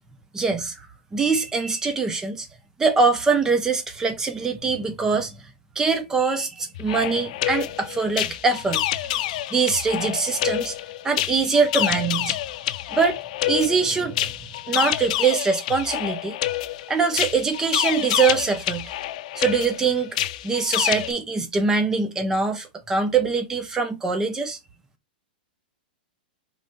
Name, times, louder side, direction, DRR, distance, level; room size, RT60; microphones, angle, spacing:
voice 1, 0.3-0.7 1.1-2.5 2.8-5.4 5.8-9.2 9.5-10.8 11.0-12.4 12.9-13.2 13.5-14.3 14.7-16.3 16.9-18.9 19.3-20.2 20.4-24.6, right 4 dB, 10° right, 0.7 m, -23 dB
sound 1, 6.7-21.1, left 14 dB, 50° left, 0.4 m, -28 dB
5.0 x 3.3 x 2.6 m
supercardioid pair, 160°, 5 cm